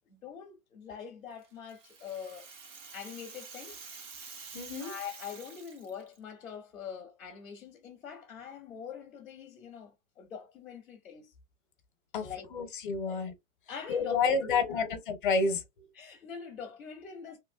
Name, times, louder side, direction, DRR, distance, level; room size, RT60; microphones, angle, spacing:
voice 1, 0.0-2.5 2.9-3.8 4.8-11.3 12.2-12.5 13.1-13.2 13.7-14.9 15.9-17.4, left 7 dB, ahead, 0.6 m, -44 dB
Rattle (instrument), 1.4-6.2, right 5 dB, 65° right, 1.1 m, -48 dB
voice 2, 4.5-4.9 12.1-13.3 13.9-15.6, left 4 dB, 40° left, 0.7 m, -29 dB
3.0 x 3.0 x 2.2 m
hypercardioid pair, 175°, 40 cm